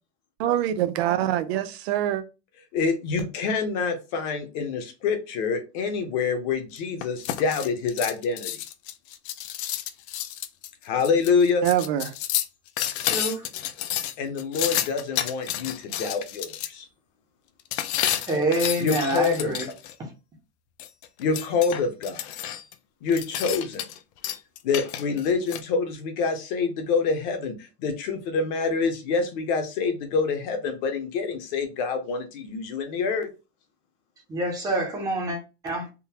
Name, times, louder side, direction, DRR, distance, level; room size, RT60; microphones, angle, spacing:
voice 1, 0.4-2.2 11.6-12.1, right 12 dB, 70° right, 0.6 m, -24 dB
voice 2, 2.7-8.6 10.8-11.7 14.2-16.9 18.8-19.5 21.2-22.3 23.0-23.8 24.6-33.3, left 5 dB, 45° left, 0.7 m, -26 dB
sound 1, 6.8-16.7 17.7-19.9 20.8-22.7 23.1-24.0 24.2-25.6, left 12 dB, 80° left, 0.5 m, -30 dB
voice 3, 13.1-13.5 18.3-19.7 20.0-20.1 34.3-35.4 35.6-35.9, right 1 dB, 10° right, 0.5 m, -26 dB
3.6 x 2.0 x 2.8 m
supercardioid pair, 180°, 32 cm